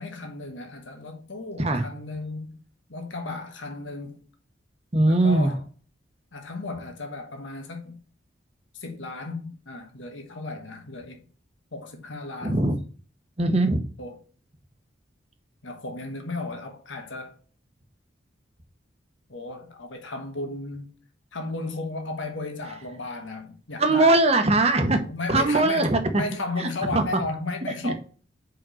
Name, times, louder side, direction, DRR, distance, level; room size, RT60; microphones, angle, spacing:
voice 1, 0.0-2.6 2.9-4.2 5.0-5.6 6.3-8.0 8.7-11.2 11.7-12.7 14.0-14.2 15.6-17.4 19.3-20.9 21.3-24.2 25.1-27.9, left 3 dB, 80° left, 1.4 m, -34 dB
voice 2, 4.9-5.5 12.4-12.7 13.4-13.8 23.8-25.0 25.3-26.2 26.6-27.0 27.8-27.9, right 2 dB, 35° right, 1.0 m, -21 dB
5.2 x 4.9 x 6.2 m
head